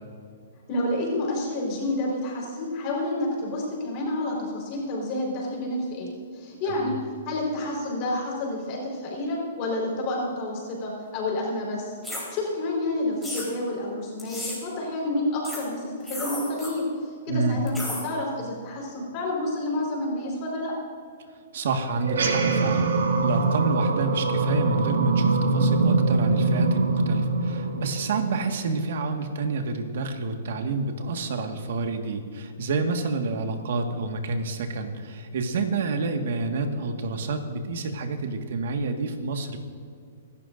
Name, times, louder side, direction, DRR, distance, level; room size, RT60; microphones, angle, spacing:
voice 1, 0.7-7.0 7.2-12.0 12.3-20.8, left 1 dB, 35° left, -2 dB, 4.4 m, -29 dB
sound 1, 12.0-12.2 13.2-13.5 14.2-14.6 15.4-15.6 16.0-16.7 17.7-18.0, left 2 dB, ahead, 4.1 m, -33 dB
voice 2, 17.3-17.6 21.5-22.9 23.2-39.6, right 3 dB, 65° right, 5 dB, 1.7 m, -28 dB
sound 2, 22.0-28.7, right 3 dB, 85° right, 1.7 m, -23 dB
26.5 x 12.0 x 2.6 m, 2.3 s
hypercardioid pair, 160°, 0 cm